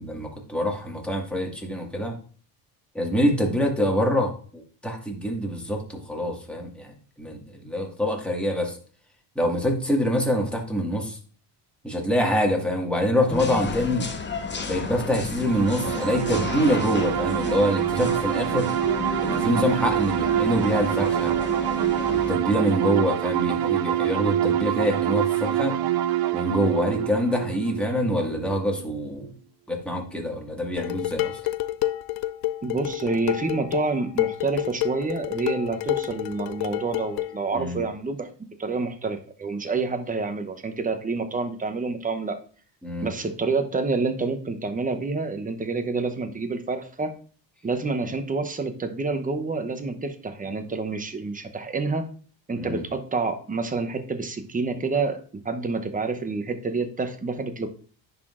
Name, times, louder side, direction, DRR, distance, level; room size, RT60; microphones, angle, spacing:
voice 1, 0.0-2.1 2.9-8.8 9.3-11.2 11.8-14.1 14.6-18.7 19.2-21.3 22.1-25.8 26.3-29.3 29.7-31.4 37.5-37.8 42.8-43.1 52.6-52.8, equal, ahead, 0 dB, 1.8 m, -25 dB
sound 1, 13.3-22.3, left 4 dB, 25° left, 0.7 m, -33 dB
sound 2, 15.4-28.9, right 11 dB, 50° right, 0.5 m, -26 dB
Dishes pots and pans, 30.8-37.4, left 15 dB, 50° left, 0.5 m, -29 dB
voice 2, 32.6-42.4 43.0-47.1 47.6-52.1 52.5-57.7, right 3 dB, 15° right, 7 dB, 0.8 m, -28 dB
10.5 x 4.0 x 2.5 m, 0.42 s
supercardioid pair, 85°, 48 cm